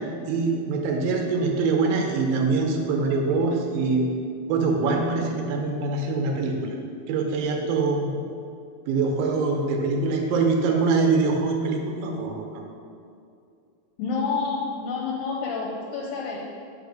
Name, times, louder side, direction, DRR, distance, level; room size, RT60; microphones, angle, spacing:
voice 1, 0.3-4.1 4.5-6.8 7.1-8.1 8.9-12.6, right 4 dB, 80° right, 1 dB, 2.4 m, -24 dB
voice 2, 14.0-16.4, left 4 dB, 80° left, -3 dB, 2.4 m, -28 dB
5.6 x 5.5 x 5.2 m, 2.4 s
omnidirectional pair, 4.2 m